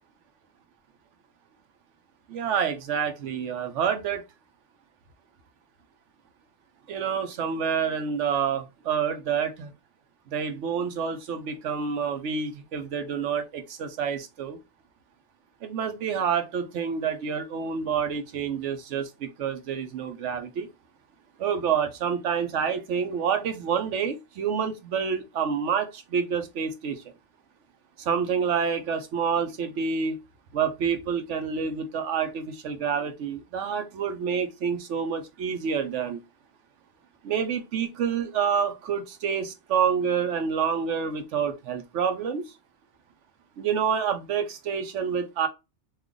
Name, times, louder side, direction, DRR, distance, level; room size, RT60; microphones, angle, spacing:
voice 1, 2.3-4.2 6.9-9.7 10.3-14.6 15.6-20.7 21.4-27.0 28.0-30.2 30.5-36.2 37.2-42.4 43.6-45.5, right 7 dB, 80° right, 1.0 m, -28 dB
3.2 x 2.4 x 3.6 m
omnidirectional pair, 1.2 m